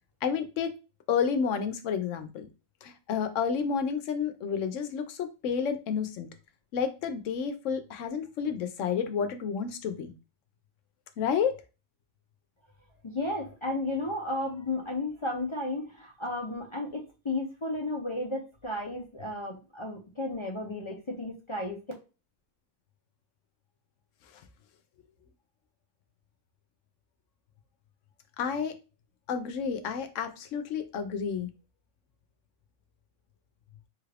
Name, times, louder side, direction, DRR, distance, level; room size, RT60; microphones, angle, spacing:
voice 1, 0.2-0.7 1.1-2.5 2.8-6.3 6.7-10.1 11.2-11.6 28.4-28.7 29.3-31.5, left 6 dB, 85° left, 7 dB, 1.0 m, -30 dB
voice 2, 13.0-21.8, left 2 dB, 40° left, 0 dB, 0.4 m, -33 dB
3.4 x 2.4 x 3.3 m, 0.31 s
omnidirectional pair, 1.3 m